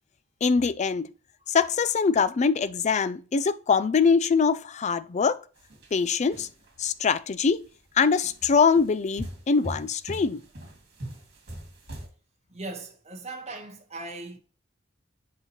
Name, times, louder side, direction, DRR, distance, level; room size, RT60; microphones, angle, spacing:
voice 1, 0.4-1.1 1.5-5.4 5.9-6.5 6.8-7.7 8.0-10.4, left 5 dB, 35° left, 0.4 m, -23 dB
sound 1, 5.6-6.9 7.5-7.7 8.2-12.1, equal, 60° right, 2.2 m, -41 dB
voice 2, 12.5-14.4, right 2 dB, 35° right, 1.3 m, -38 dB
8.0 x 5.5 x 3.0 m
head